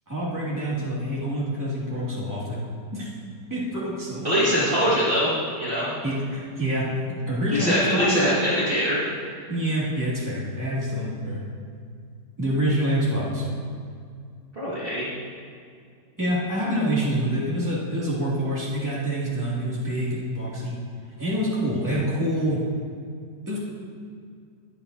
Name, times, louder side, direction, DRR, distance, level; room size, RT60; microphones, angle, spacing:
voice 1, 0.1-2.6 2.9-3.1 3.5-4.4 6.0-6.9 7.3-8.1 9.5-11.4 12.4-13.4 16.2-20.8 21.2-22.6 23.5-23.6, equal, 10° right, -8 dB, 2.6 m, -26 dB
voice 2, 4.2-5.9 7.5-9.0 14.6-15.1, equal, 30° right, -10 dB, 2.3 m, -23 dB
21.0 x 8.0 x 2.8 m, 2.2 s
omnidirectional pair, 1.8 m